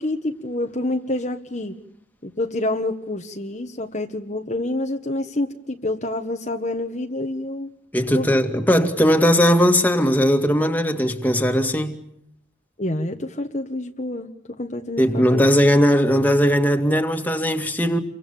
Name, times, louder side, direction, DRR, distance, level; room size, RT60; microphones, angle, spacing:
voice 1, 0.0-1.7 2.2-7.7 8.1-8.3 12.8-15.4, left 1 dB, 35° left, 1.4 m, -27 dB
voice 2, 7.9-12.0 15.0-18.0, equal, 10° left, 2.3 m, -18 dB
30.0 x 25.0 x 7.1 m
head